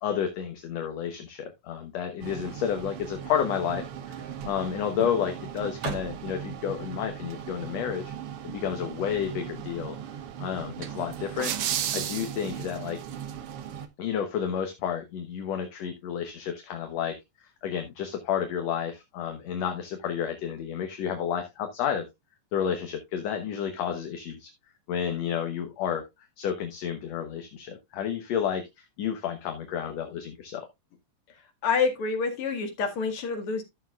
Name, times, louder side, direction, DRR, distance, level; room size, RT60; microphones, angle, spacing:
voice 1, 0.0-8.1 8.4-10.0 10.4-11.5 11.9-13.0 14.0-17.2 17.6-22.1 22.5-24.5 24.9-26.1 26.4-30.7, left 8 dB, 65° left, 2.1 m, -31 dB
sound 1, 2.2-13.9, right 9 dB, 65° right, 1.5 m, -36 dB
voice 2, 31.6-33.6, left 5 dB, 50° left, 2.6 m, -27 dB
13.5 x 6.9 x 2.4 m
omnidirectional pair, 3.5 m